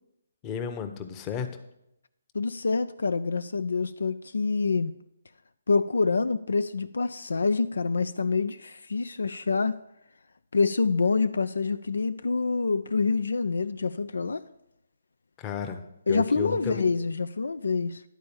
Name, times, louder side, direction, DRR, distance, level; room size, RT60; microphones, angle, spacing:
voice 1, 0.4-1.5 15.4-15.8 16.1-16.8, left 7 dB, 25° left, 0.8 m, -33 dB
voice 2, 2.3-4.9 5.7-9.8 10.5-14.4 16.1-18.0, left 4 dB, 80° left, 0.3 m, -26 dB
11.0 x 4.3 x 7.0 m
figure-of-eight pair, 145°, 0 cm